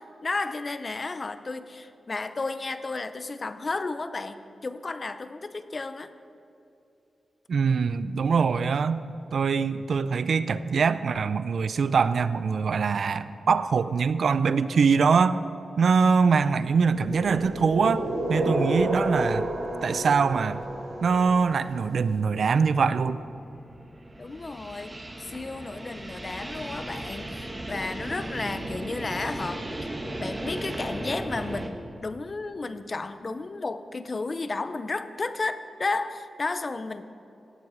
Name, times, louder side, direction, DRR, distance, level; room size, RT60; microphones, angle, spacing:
voice 1, 0.0-6.1 24.2-37.0, left 3 dB, 30° left, 11 dB, 0.5 m, -33 dB
voice 2, 7.5-9.0 9.3-15.4 15.8-19.5 19.8-20.6 21.0-23.2, right 5 dB, 60° right, 14 dB, 0.4 m, -23 dB
sound 1, 16.9-21.8, right 1 dB, 80° right, 3.4 m, -30 dB
sound 2, 23.1-31.7, right 1 dB, 20° right, 1.1 m, -36 dB
16.5 x 8.0 x 7.3 m, 2.7 s
wide cardioid pair, 165°, 0 cm